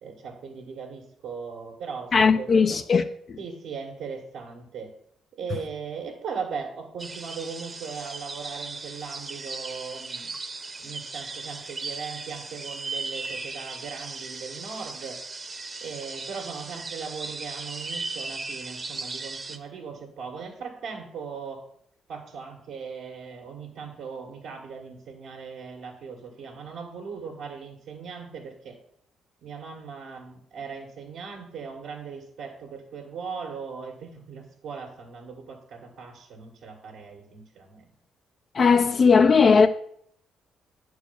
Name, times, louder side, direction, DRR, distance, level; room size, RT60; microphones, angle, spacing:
voice 1, 0.0-2.8 3.4-4.9 5.3-10.3 10.8-15.2 15.8-21.6 22.1-28.8 29.4-37.8, right 5 dB, 85° right, 1.8 m, -38 dB
voice 2, 2.1-3.0 3.3-3.4 38.5-39.7, left 5 dB, 45° left, 0.5 m, -18 dB
sound 1, 7.0-19.6, right 3 dB, 30° right, 0.9 m, -37 dB
9.3 x 4.7 x 7.0 m
cardioid pair, 90°, 0 cm